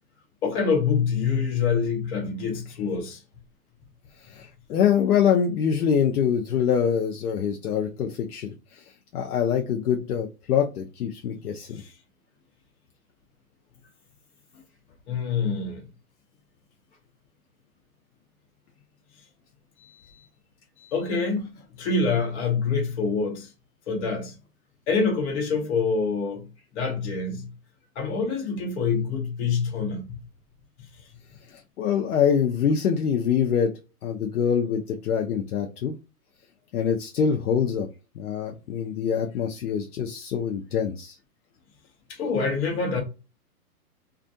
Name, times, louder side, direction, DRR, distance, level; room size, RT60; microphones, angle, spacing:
voice 1, 0.4-3.2 11.7-11.9 15.1-15.9 19.8-20.0 20.8-21.5 21.8-23.5 23.9-24.3 24.9-26.5 26.7-27.5 27.9-30.2 42.1-43.0, left 5 dB, 45° left, 1.0 m, -26 dB
voice 2, 4.3-8.5 9.1-11.8 31.8-33.7 34.0-35.9 36.7-37.9 38.2-41.2, left 7 dB, 70° left, 0.7 m, -24 dB
2.4 x 2.2 x 2.6 m
hypercardioid pair, 145°, 46 cm